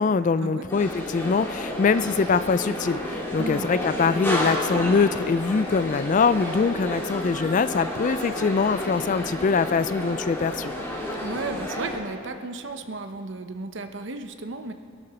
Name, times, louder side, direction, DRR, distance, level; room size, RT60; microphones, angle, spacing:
voice 1, 0.0-10.7, left 5 dB, 35° left, 14 dB, 0.3 m, -23 dB
sound 1, 0.7-12.0, left 1 dB, 10° left, 2.3 m, -31 dB
voice 2, 11.2-14.7, right 3 dB, 60° right, 7 dB, 0.9 m, -34 dB
22.5 x 12.0 x 4.3 m, 2.3 s
head